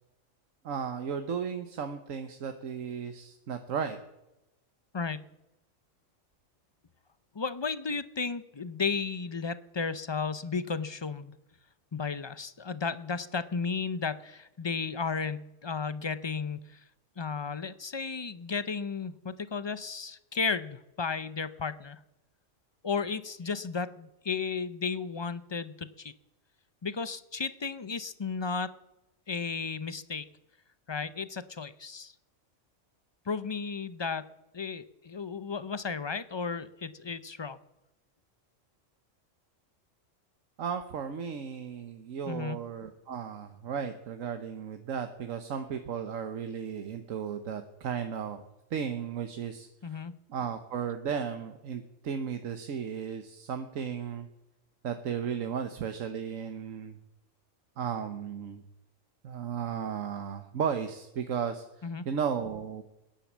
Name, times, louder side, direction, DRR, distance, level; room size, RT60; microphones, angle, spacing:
voice 1, 0.6-4.0 40.6-48.4 48.7-50.0 50.3-54.3 54.8-57.0 57.8-58.6 59.2-62.8, right 7 dB, 85° right, 7 dB, 1.4 m, -35 dB
voice 2, 7.3-11.3 11.9-16.8 17.2-22.0 22.8-26.1 26.8-28.7 29.3-30.3 30.9-32.1 33.3-34.2 34.5-37.6 42.3-42.6 49.8-50.1 61.8-62.1, left 5 dB, 35° left, 14 dB, 0.4 m, -34 dB
19.0 x 10.5 x 7.3 m, 0.93 s
omnidirectional pair, 1.3 m